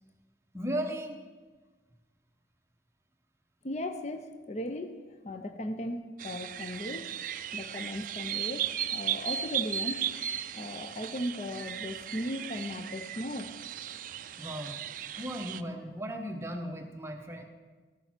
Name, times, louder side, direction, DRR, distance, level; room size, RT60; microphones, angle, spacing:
voice 1, 0.5-1.2 14.4-14.8 15.2-17.4, equal, 15° right, 3 dB, 0.9 m, -36 dB
voice 2, 3.6-5.0 5.2-7.1 7.5-10.1 10.6-13.5, left 1 dB, 40° left, 8 dB, 0.6 m, -37 dB
sound 1, 6.2-15.6, right 10 dB, 50° right, 0.3 m, -36 dB
13.5 x 6.7 x 6.0 m, 1.4 s
head